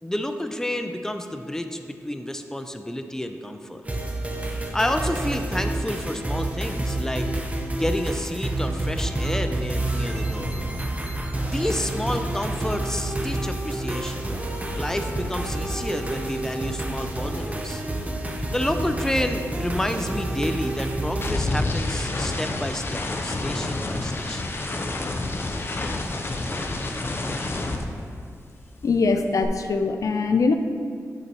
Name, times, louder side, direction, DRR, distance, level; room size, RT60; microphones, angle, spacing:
voice 1, 0.0-3.8 4.6-7.3 7.8-10.6 11.4-14.3 14.7-17.8 18.5-24.5, left 1 dB, 10° left, 7 dB, 0.5 m, -30 dB
sound 1, 3.8-21.3, right 1 dB, 25° right, 0.9 m, -28 dB
sound 2, 12.1-12.4 12.6-17.0 17.3-28.5 28.8-29.4, left 2 dB, 40° left, 0.7 m, -31 dB
voice 2, 28.8-30.5, left 4 dB, 65° left, 7 dB, 0.4 m, -22 dB
8.4 x 6.7 x 3.0 m, 2.2 s
cardioid pair, 55°, 6 cm